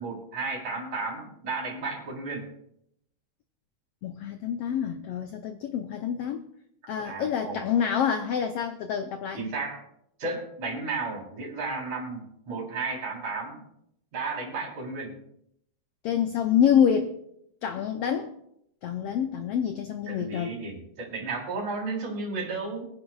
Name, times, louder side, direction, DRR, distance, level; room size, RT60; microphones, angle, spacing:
voice 1, 0.0-2.5 7.0-7.6 9.4-9.8 10.2-13.6 14.1-15.1 20.1-22.9, right 3 dB, 60° right, -2 dB, 5.0 m, -33 dB
voice 2, 4.0-6.5 6.9-9.4 16.0-17.1 17.6-18.3 18.8-20.6, left 8 dB, 85° left, 7 dB, 1.3 m, -27 dB
24.0 x 10.5 x 2.4 m, 0.76 s
omnidirectional pair, 3.6 m